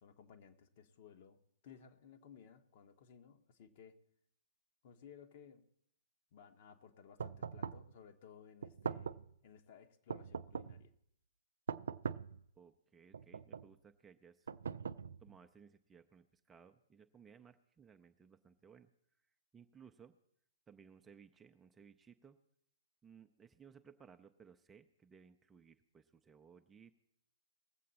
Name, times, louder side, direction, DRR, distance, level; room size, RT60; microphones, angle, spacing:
voice 1, 0.0-4.0 4.8-5.6 6.3-10.9, left 7 dB, 45° left, 6 dB, 1.2 m, -59 dB
sound 1, 7.2-7.9 8.6-9.3 10.1-10.9 11.7-12.4 13.1-13.7 14.5-15.4, right 6 dB, 70° right, 0.4 m, -42 dB
voice 2, 12.6-14.5 15.2-18.9 19.5-20.2 20.7-22.4 23.0-27.0, right 6 dB, 15° right, 8 dB, 0.6 m, -61 dB
20.0 x 7.6 x 4.2 m, 0.72 s
figure-of-eight pair, 120°, 0 cm